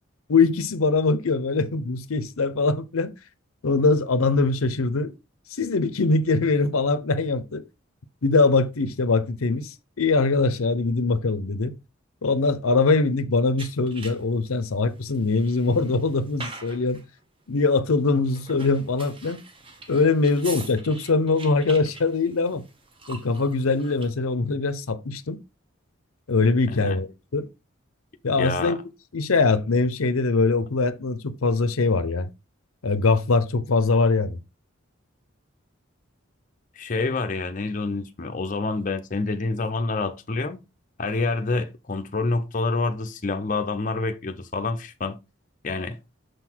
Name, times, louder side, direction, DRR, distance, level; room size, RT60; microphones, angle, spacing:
voice 1, 0.3-3.1 3.6-5.1 5.5-7.6 8.2-11.7 12.2-17.0 17.5-19.4 19.9-22.6 23.1-25.4 26.3-27.5 28.2-28.8 29.1-32.3 32.8-34.4, left 3 dB, 85° left, 0.7 m, -22 dB
sound 1, 13.6-14.5 15.0-17.1 18.2-24.1, right 3 dB, 25° right, 0.9 m, -43 dB
voice 2, 26.7-27.0 28.4-28.8 36.8-40.6 41.0-45.2 45.6-46.0, left 3 dB, 40° left, 0.6 m, -27 dB
6.6 x 4.0 x 4.4 m
head